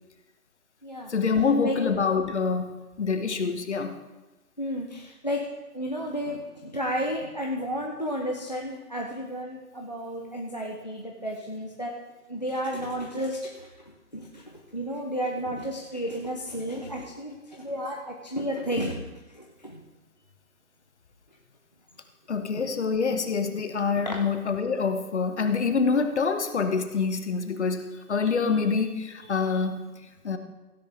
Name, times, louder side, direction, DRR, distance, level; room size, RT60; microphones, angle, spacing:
voice 1, 1.1-2.7 3.0-4.0 22.3-29.9 30.2-30.4, left 5 dB, 45° left, 8 dB, 1.0 m, -26 dB
voice 2, 4.6-5.4 5.7-11.9 12.3-13.7 14.1-14.4 14.7-19.0 19.3-19.8 22.6-22.7 24.1-24.2, equal, 30° left, 1 dB, 0.5 m, -32 dB
15.5 x 10.0 x 3.3 m, 1.1 s
hypercardioid pair, 170°, 47 cm